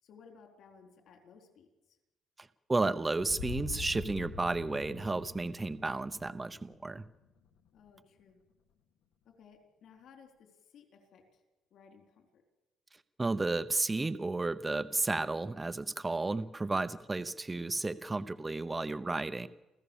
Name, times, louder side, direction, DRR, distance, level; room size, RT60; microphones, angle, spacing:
voice 1, 0.0-2.0 7.7-8.4 9.2-11.5 11.7-12.4, left 6 dB, 60° left, 5 dB, 3.8 m, -59 dB
voice 2, 2.4-7.1 13.2-19.5, right 3 dB, 15° right, 13 dB, 0.7 m, -33 dB
sound 1, 3.2-7.2, left 4 dB, 90° left, 1.9 m, -44 dB
28.5 x 15.5 x 7.1 m, 1.0 s
cardioid pair, 155°, 0 cm